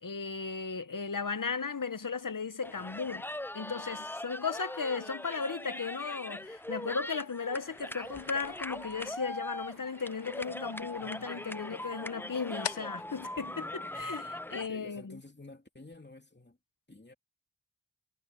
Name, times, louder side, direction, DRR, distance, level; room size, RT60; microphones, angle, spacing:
voice 1, 0.0-3.3 3.5-15.2, left 5 dB, 45° left, 1.1 m, -36 dB
sound 1, 0.9-14.6, left 7 dB, 65° left, 0.9 m, -51 dB
sound 2, 2.6-14.7, left 1 dB, 5° left, 0.4 m, -41 dB
sound 3, 8.0-13.0 13.7-14.3, right 4 dB, 50° right, 1.7 m, -60 dB
voice 2, 14.7-16.6 16.9-17.1, left 2 dB, 25° left, 2.9 m, -51 dB
wide cardioid pair, 50°, 44 cm